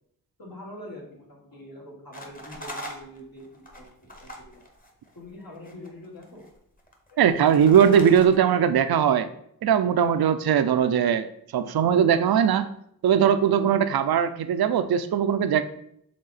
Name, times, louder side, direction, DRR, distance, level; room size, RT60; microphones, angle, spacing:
voice 1, 0.4-4.6 5.1-6.5 7.1-7.8, left 1 dB, 65° left, -3 dB, 2.2 m, -44 dB
sound 1, 2.1-5.3 5.5-6.5 6.8-8.4, equal, 20° left, 1.3 m, -41 dB
voice 2, 7.2-9.3 9.6-11.3 11.5-12.7 13.0-15.6, right 8 dB, 70° right, 10 dB, 0.5 m, -20 dB
6.6 x 3.7 x 4.0 m, 0.71 s
wide cardioid pair, 90°, 38 cm